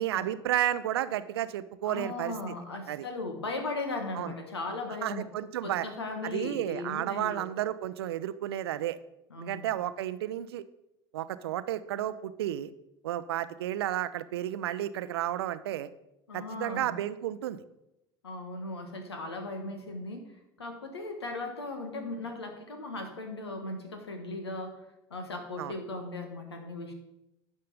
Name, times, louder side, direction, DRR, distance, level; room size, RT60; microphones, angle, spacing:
voice 1, 0.0-2.3 2.9-3.1 4.1-4.3 5.0-5.9 6.2-9.0 9.4-10.6 11.1-12.7 13.0-15.9 16.3-17.6 25.6-25.7, right 12 dB, 75° right, 15 dB, 0.5 m, -32 dB
voice 2, 1.8-5.3 5.6-7.5 9.3-9.7 16.3-16.9 18.2-20.3 20.6-24.8 25.1-26.9, left 2 dB, 85° left, 5 dB, 1.3 m, -37 dB
10.5 x 5.4 x 5.3 m, 0.89 s
figure-of-eight pair, 65°, 13 cm